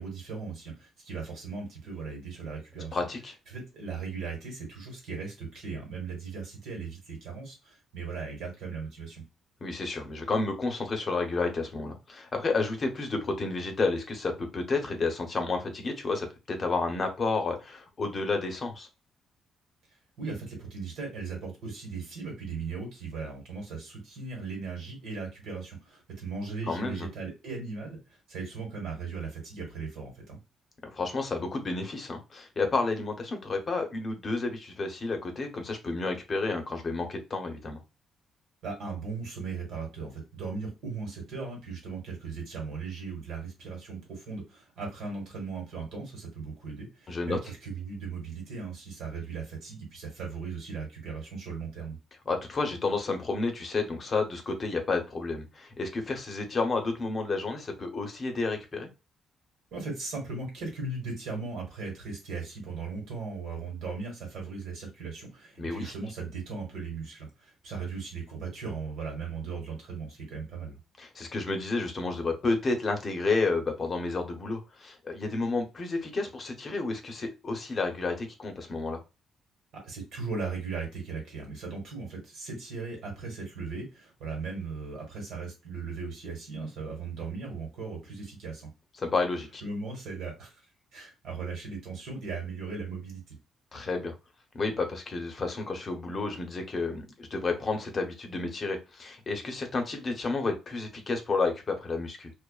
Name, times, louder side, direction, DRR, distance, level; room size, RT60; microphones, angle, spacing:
voice 1, 0.0-3.0 3.5-9.2 20.2-30.4 38.6-51.9 59.7-70.8 79.7-88.7 89.6-90.6 90.9-93.2, right 4 dB, 75° right, 0 dB, 1.5 m, -38 dB
voice 2, 2.9-3.3 9.6-18.9 26.7-27.1 30.9-37.8 47.1-47.4 52.3-58.9 65.6-65.9 71.0-79.0 89.0-89.6 93.7-94.1 94.5-102.3, left 3 dB, 40° left, 4 dB, 0.7 m, -31 dB
2.4 x 2.3 x 2.3 m, 0.27 s
cardioid pair, 90°, 0 cm